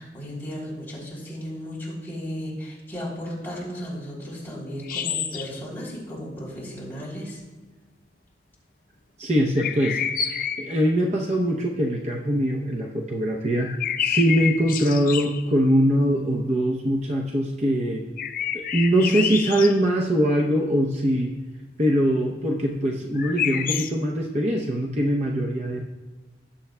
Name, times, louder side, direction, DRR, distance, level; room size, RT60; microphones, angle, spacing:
voice 1, 0.0-7.4, equal, 10° left, -6 dB, 3.2 m, -35 dB
sound 1, 4.8-5.6 9.6-10.8 13.6-15.5 18.2-19.8 23.2-23.9, left 8 dB, 50° left, 0.5 m, -28 dB
voice 2, 9.2-10.0 10.2-18.0 18.5-21.3 21.8-25.8, equal, 40° right, 0 dB, 0.7 m, -22 dB
18.5 x 7.1 x 2.2 m, 1.2 s
head